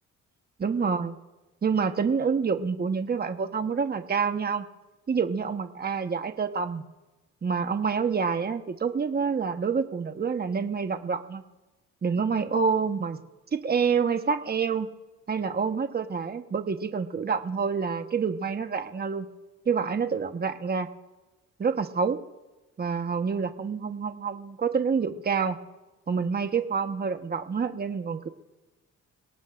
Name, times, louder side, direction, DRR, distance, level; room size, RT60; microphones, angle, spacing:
voice 1, 0.6-1.1 1.6-4.6 5.1-6.8 7.4-11.4 12.0-13.2 13.5-14.9 15.3-19.3 19.6-20.9 21.6-22.2 22.8-25.6 26.1-28.3, right 5 dB, 30° right, 7 dB, 1.2 m, -27 dB
29.0 x 17.5 x 2.6 m, 1.1 s
cardioid pair, 90°, 30 cm